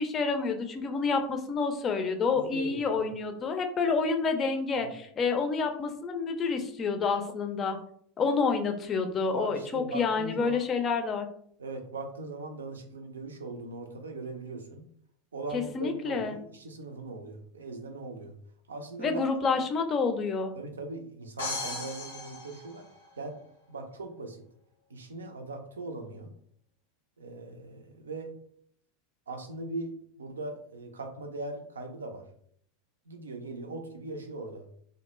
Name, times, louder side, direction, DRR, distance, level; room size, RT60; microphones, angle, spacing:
voice 1, 0.0-7.8 8.2-11.3 15.5-16.4 19.0-20.5, left 4 dB, 30° left, 5 dB, 0.4 m, -28 dB
voice 2, 2.3-3.1 4.7-4.9 9.3-10.6 11.6-14.9 15.3-18.4 18.7-19.2 19.5-19.6 20.5-22.9 23.2-23.4 23.7-24.4 24.9-26.3 27.2-28.3 29.3-32.2 33.1-34.6, right 2 dB, 80° right, 4 dB, 0.4 m, -40 dB
sound 1, 21.4-23.4, left 2 dB, 80° left, 0.6 m, -37 dB
2.2 x 2.0 x 3.0 m, 0.63 s
figure-of-eight pair, 85°, 0 cm